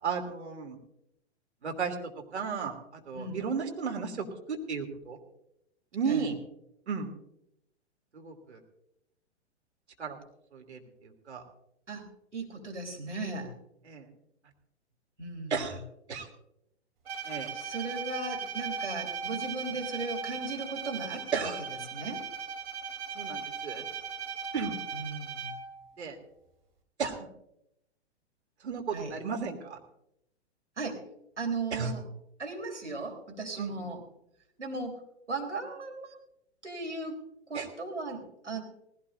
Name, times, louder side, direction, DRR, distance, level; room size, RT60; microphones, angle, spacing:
voice 1, 0.0-0.8 1.6-5.2 5.9-6.3 6.9-7.1 8.1-8.6 10.0-10.2 10.5-11.4 13.8-14.1 15.5-15.8 16.1-16.3 17.2-17.5 21.3-21.6 23.1-23.9 24.5-24.8 26.0-26.2 27.0-27.3 28.6-29.8 31.7-31.9 33.5-33.9 37.5-37.7, right 5 dB, 70° right, 3 dB, 3.1 m, -34 dB
voice 2, 11.9-13.5 15.2-15.5 17.5-21.5 21.9-22.2 24.9-25.5 28.9-29.1 30.8-31.0 31.4-32.0 32.4-34.0 34.6-35.0 35.3-36.2 36.6-37.2 37.5-38.6, right 3 dB, 90° right, 2 dB, 3.8 m, -37 dB
Bowed string instrument, 17.1-25.8, right 6 dB, 55° right, 3.5 m, -38 dB
19.0 x 17.0 x 2.6 m, 0.78 s
figure-of-eight pair, 110°, 34 cm